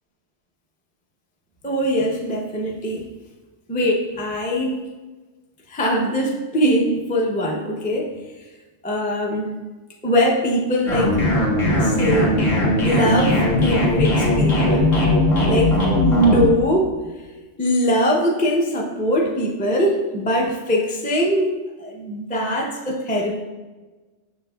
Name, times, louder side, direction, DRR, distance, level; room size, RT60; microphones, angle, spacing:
voice 1, 1.6-3.1 3.7-4.8 5.7-8.1 8.8-9.6 10.0-11.2 11.8-12.4 12.8-14.9 15.5-16.9 17.6-21.5 21.8-23.4, equal, 10° left, -1 dB, 0.4 m, -21 dB
sound 1, 10.9-16.5, left 1 dB, 50° left, 1.4 m, -18 dB
6.8 x 6.2 x 2.3 m, 1.3 s
omnidirectional pair, 1.3 m